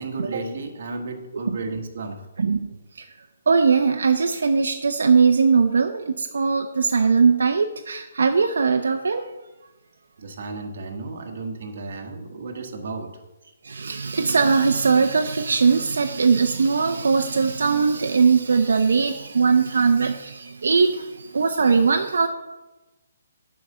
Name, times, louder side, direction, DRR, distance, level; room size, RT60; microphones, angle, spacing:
voice 1, 0.0-2.3 10.2-13.1, right 3 dB, 50° right, 3 dB, 1.5 m, -33 dB
voice 2, 3.5-6.0 6.3-9.2 13.8-20.1 20.6-20.9 21.3-22.3, right 5 dB, 80° right, 5 dB, 0.7 m, -19 dB
9.3 x 5.0 x 6.7 m, 1.0 s
hypercardioid pair, 170°, 0 cm